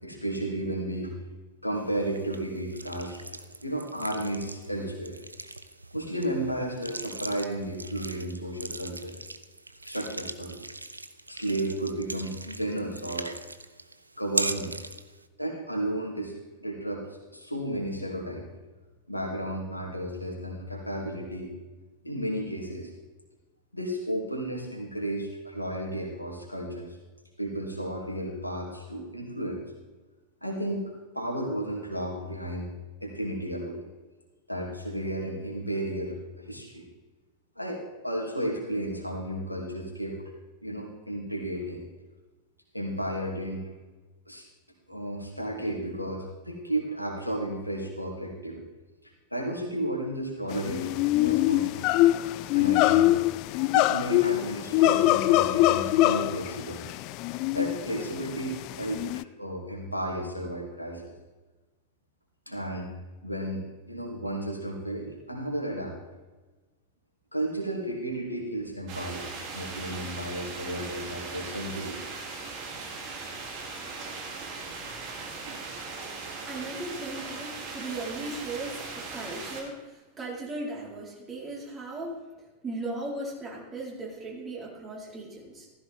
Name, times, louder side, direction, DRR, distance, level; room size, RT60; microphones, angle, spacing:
voice 1, 0.0-1.2 1.6-3.2 3.6-5.2 5.9-9.1 9.8-10.6 11.3-13.3 14.2-14.8 15.4-18.5 19.1-21.5 22.0-22.9 23.7-27.0 27.4-29.6 30.4-30.8 31.1-32.7 33.0-33.8 34.5-36.8 37.6-40.2 40.6-41.8 42.7-43.6 44.3-44.4 44.9-48.6 49.0-51.9 52.5-53.1 53.7-56.8 57.5-61.1 62.5-62.9 63.2-66.0 67.3-72.0, right 1 dB, 90° left, -1 dB, 2.7 m, -33 dB
sound 1, 1.7-15.2, right 2 dB, 85° right, 0.6 m, -39 dB
sound 2, 50.5-59.2, left 16 dB, 40° left, 0.4 m, -24 dB
sound 3, 68.9-79.6, right 4 dB, 45° right, 3.1 m, -39 dB
voice 2, 76.4-82.1 82.6-85.7, right 2 dB, 25° right, -3 dB, 4.5 m, -37 dB
15.5 x 14.5 x 3.7 m, 1.2 s
figure-of-eight pair, 90°, 0 cm